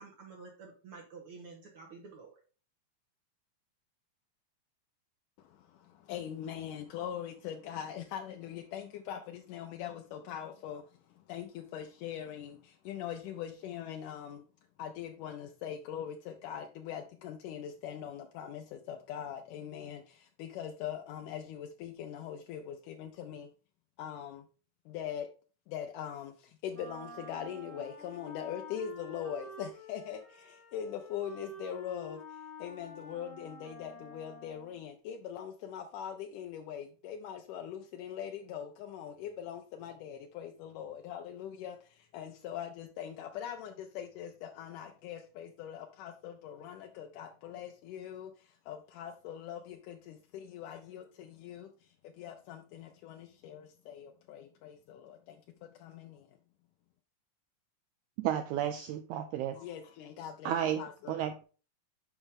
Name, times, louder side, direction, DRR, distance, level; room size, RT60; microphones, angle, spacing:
voice 1, 0.0-2.4, right 4 dB, 60° right, 1 dB, 1.5 m, -50 dB
voice 2, 5.4-14.4 14.8-23.5 24.0-24.5 24.9-25.3 25.7-56.3 59.5-61.1, left 9 dB, 80° left, 4 dB, 2.1 m, -42 dB
Wind instrument woodwind instrument, 26.7-34.8, left 2 dB, 20° left, 0.9 m, -49 dB
voice 3, 58.2-59.6 60.4-60.8 61.1-61.4, right 10 dB, 85° right, 8 dB, 1.7 m, -32 dB
7.0 x 5.4 x 3.6 m, 0.36 s
omnidirectional pair, 3.9 m